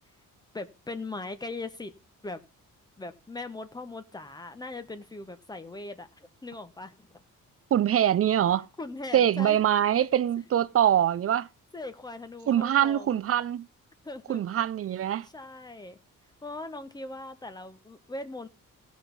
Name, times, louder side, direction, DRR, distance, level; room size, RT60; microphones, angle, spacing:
voice 1, 0.5-1.9 2.2-2.4 3.0-6.1 6.4-7.2 8.8-9.6 11.7-13.2 14.0-14.4 15.3-16.0 16.4-18.5, left 2 dB, 10° left, 1.1 m, -39 dB
voice 2, 7.7-8.7 9.1-11.5 12.5-13.7 14.3-15.3, right 10 dB, 45° right, 0.6 m, -24 dB
16.5 x 6.2 x 5.3 m
cardioid pair, 165°, 33 cm